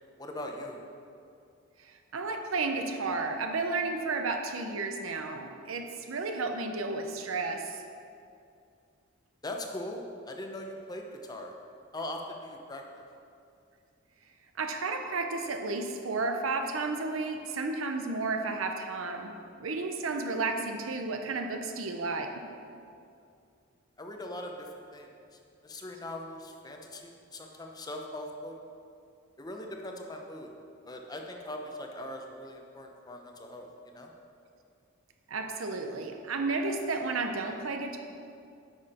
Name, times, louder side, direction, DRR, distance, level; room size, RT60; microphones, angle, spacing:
voice 1, 0.2-0.8 9.4-11.5 11.9-13.1 24.0-25.1 25.6-28.6 29.4-30.5 30.9-34.1, left 1 dB, 20° left, 2 dB, 0.7 m, -40 dB
voice 2, 2.1-7.8 14.6-22.3 35.3-38.0, right 3 dB, 80° right, 5 dB, 0.8 m, -32 dB
10.0 x 6.3 x 4.3 m, 2.5 s
head